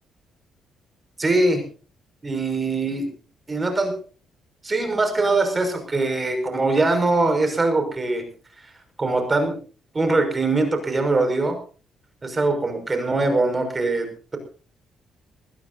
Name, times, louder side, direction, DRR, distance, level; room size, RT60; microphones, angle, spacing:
voice 1, 1.2-1.6 2.2-3.1 3.5-3.9 4.6-8.3 9.0-9.6 9.9-11.6 12.2-14.4, right 2 dB, 25° right, 6 dB, 5.9 m, -22 dB
20.5 x 20.0 x 2.7 m, 0.39 s
cardioid pair, 90°, 0 cm